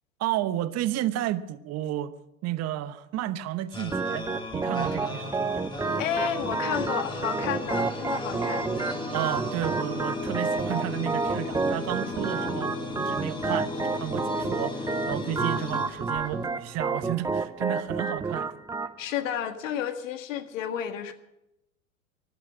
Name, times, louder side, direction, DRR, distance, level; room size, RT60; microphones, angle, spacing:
voice 1, 0.2-2.1 2.4-5.7 9.1-18.6, right 13 dB, 40° right, 1.1 m, -32 dB
sound 1, 3.7-16.6, left 2 dB, 10° left, 2.4 m, -35 dB
Organ, 3.9-18.9, right 4 dB, 10° right, 0.6 m, -30 dB
voice 2, 6.0-8.7 19.0-21.1, left 9 dB, 70° left, 1.8 m, -31 dB
15.0 x 11.5 x 7.5 m
hypercardioid pair, 90°, 40 cm